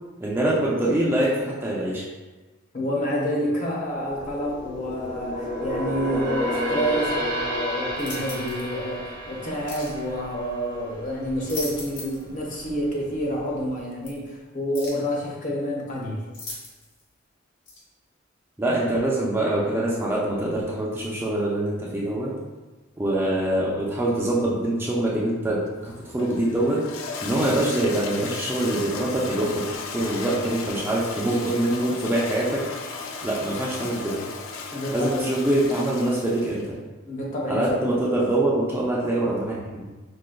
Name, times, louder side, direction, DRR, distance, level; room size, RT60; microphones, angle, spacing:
voice 1, 0.2-2.0 18.6-22.3 23.0-26.8 27.2-29.6 29.9-32.6 33.2-34.2 34.9-36.6 37.5-39.9, right 1 dB, 10° right, -5 dB, 0.3 m, -24 dB
voice 2, 2.7-16.2 34.7-35.3 37.1-37.8, equal, 40° left, -3 dB, 0.7 m, -28 dB
sound 1, 3.9-11.4 11.8-12.0 12.6-13.3 13.6-13.7, equal, 60° right, 0.8 m, -31 dB
sound 2, 8.0-8.7 9.7-10.0 11.2-12.3 12.6-12.7 14.0-14.1 14.7-15.1 16.3-17.0 17.7-17.8, left 2 dB, 60° left, 0.9 m, -38 dB
Toilet flush, 25.7-36.7, left 4 dB, 85° left, 0.4 m, -35 dB
4.9 x 2.2 x 2.2 m, 1.2 s
head